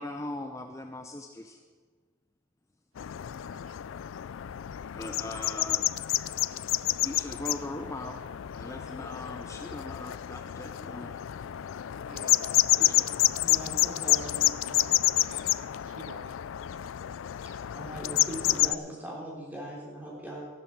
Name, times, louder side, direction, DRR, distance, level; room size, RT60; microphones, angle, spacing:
voice 1, 0.0-1.6 4.9-5.8 7.0-8.2 8.5-11.2 12.7-13.1, left 1 dB, 15° left, 4 dB, 0.5 m, -40 dB
sound 1, 3.0-18.7, left 15 dB, 65° left, 0.3 m, -29 dB
voice 2, 3.4-3.9 12.1-13.3 14.2-14.9 15.2-16.4, right 4 dB, 80° right, 11 dB, 0.7 m, -50 dB
voice 3, 13.4-14.9 17.7-20.5, right 1 dB, 10° right, -4 dB, 3.7 m, -40 dB
15.5 x 11.5 x 4.6 m, 1.5 s
head